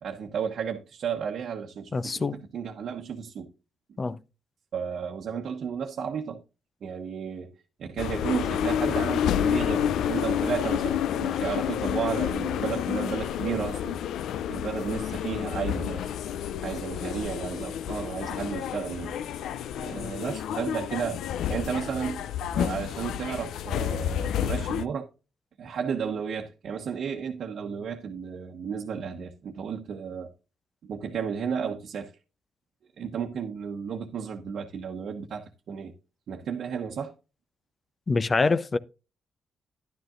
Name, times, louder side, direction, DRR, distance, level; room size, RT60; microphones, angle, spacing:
voice 1, 0.0-2.3 2.5-3.5 4.7-6.4 6.8-7.5 7.8-14.0 14.5-16.1 16.6-19.2 19.8-21.2 21.5-22.2 22.5-25.1 25.6-30.3 30.8-32.1 33.0-35.9 36.3-37.1, right 7 dB, 65° right, 1.0 m, -33 dB
voice 2, 1.9-2.4 4.0-4.2 38.1-38.8, left 3 dB, 30° left, 0.6 m, -25 dB
sound 1, 8.0-24.8, left 9 dB, 85° left, 0.4 m, -29 dB
11.0 x 10.5 x 2.5 m
cardioid pair, 105°, 0 cm